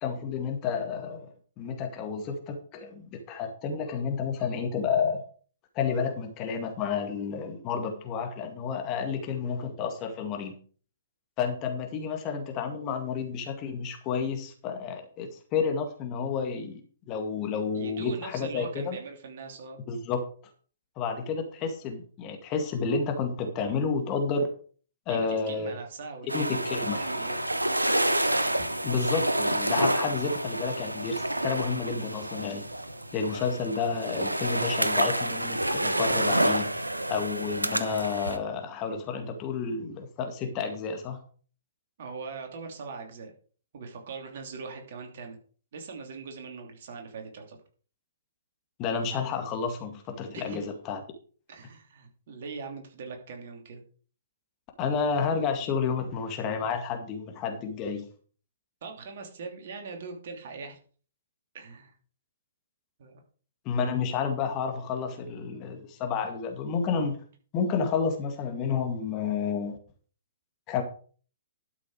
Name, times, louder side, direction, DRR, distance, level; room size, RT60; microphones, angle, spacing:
voice 1, 0.0-5.2 5.8-10.6 11.4-16.8 17.1-19.0 19.9-20.2 21.0-24.5 25.1-25.7 26.3-27.0 28.8-32.7 33.1-36.7 37.1-41.2 48.8-51.0 54.8-58.1 63.7-67.2 67.5-69.8 70.7-70.8, left 5 dB, 30° left, 5 dB, 1.9 m, -30 dB
voice 2, 17.7-19.8 25.1-26.7 26.9-27.4 28.6-28.7 42.0-43.3 43.7-45.4 45.7-47.6 50.3-50.6 51.5-53.8 58.8-60.8 61.5-62.0 63.0-63.2, right 4 dB, 50° right, 3 dB, 2.8 m, -41 dB
sound 1, 26.3-38.4, right 1 dB, 85° right, 1.0 m, -28 dB
12.5 x 6.2 x 4.9 m, 0.42 s
figure-of-eight pair, 120°, 0 cm